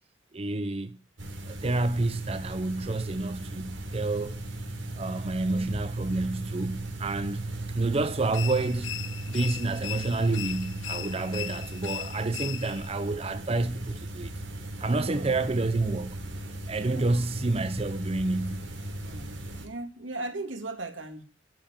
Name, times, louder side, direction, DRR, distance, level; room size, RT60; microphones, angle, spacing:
voice 1, 0.3-1.0 1.5-4.4 5.0-7.4 7.7-8.9 9.3-14.3 14.8-16.2 16.7-18.7, right 2 dB, 30° right, 0.6 m, -29 dB
sound 1, 1.2-19.7, right 1 dB, 70° right, 3.8 m, -37 dB
sound 2, 8.3-12.9, left 11 dB, 75° left, 0.7 m, -38 dB
voice 2, 14.9-15.3 16.8-17.1 19.0-21.2, right 2 dB, 85° right, 2.5 m, -38 dB
12.0 x 7.1 x 8.9 m
head